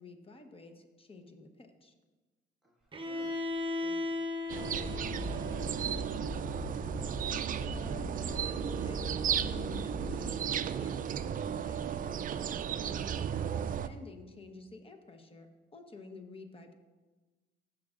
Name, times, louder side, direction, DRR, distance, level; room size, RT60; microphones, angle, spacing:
voice 1, 0.0-1.9 7.2-7.4 7.6-13.1 13.6-16.7, left 3 dB, 30° left, 5 dB, 1.0 m, -51 dB
voice 2, 2.6-3.4 3.8-4.1 4.4-6.7, right 1 dB, ahead, -2 dB, 1.5 m, -55 dB
Bowed string instrument, 2.9-6.8, left 3 dB, 25° right, 1.0 m, -37 dB
sound 1, 4.5-13.9, right 8 dB, 45° right, 0.4 m, -34 dB
sound 2, 4.7-10.5, left 2 dB, 65° left, 1.5 m, -43 dB
13.5 x 6.4 x 2.5 m, 1.2 s
cardioid pair, 90°, 20 cm